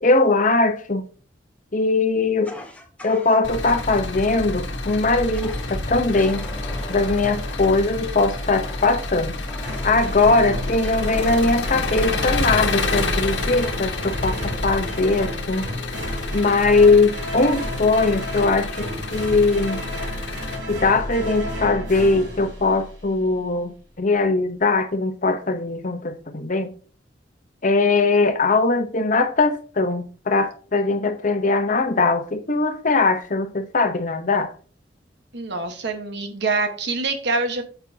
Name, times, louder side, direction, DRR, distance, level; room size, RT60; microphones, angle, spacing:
voice 1, 0.0-1.0 1.7-2.5 3.0-6.4 6.9-9.3 9.6-15.6 16.3-19.8 20.7-26.7 27.6-34.5, left 3 dB, 45° left, 0.9 m, -20 dB
Fire, 2.4-4.1 5.3-5.8 6.1-10.3 10.8-12.7, left 1 dB, 10° left, 1.0 m, -42 dB
Engine, 3.4-20.6, left 3 dB, 70° left, 1.3 m, -29 dB
sound 1, 9.6-23.2, left 1 dB, 90° right, 4.4 m, -31 dB
voice 2, 35.3-37.6, right 3 dB, 65° right, 1.3 m, -25 dB
8.6 x 6.8 x 2.8 m
head